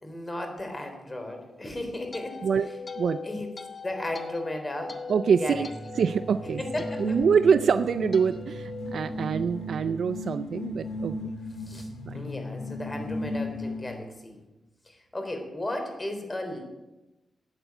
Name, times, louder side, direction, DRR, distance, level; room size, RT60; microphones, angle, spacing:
voice 1, 0.0-2.8 3.2-3.5 3.8-5.1 5.4-5.7 6.6-7.2 9.7-9.8 11.6-14.4 14.9-16.6, left 1 dB, 25° left, 5 dB, 3.5 m, -35 dB
sound 1, 1.6-10.0, left 5 dB, 40° left, 1.3 m, -40 dB
voice 2, 3.0-3.4 5.1-5.7 6.0-6.6 7.0-11.3 12.1-12.2, right 6 dB, 70° right, 11 dB, 0.5 m, -25 dB
sound 2, 5.5-14.1, left 1 dB, 80° left, 4.1 m, -36 dB
14.0 x 9.0 x 8.1 m, 1.0 s
cardioid pair, 90°, 0 cm